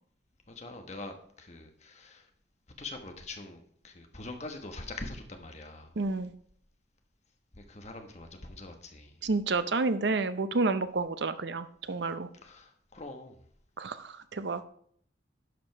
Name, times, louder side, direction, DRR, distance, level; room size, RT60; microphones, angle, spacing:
voice 1, 0.5-2.2 2.8-6.0 7.5-9.1 12.4-13.4, left 2 dB, 40° left, 1.2 m, -43 dB
voice 2, 6.0-6.3 9.2-12.3 13.8-14.6, right 3 dB, 70° right, 0.6 m, -30 dB
11.0 x 5.2 x 4.6 m
head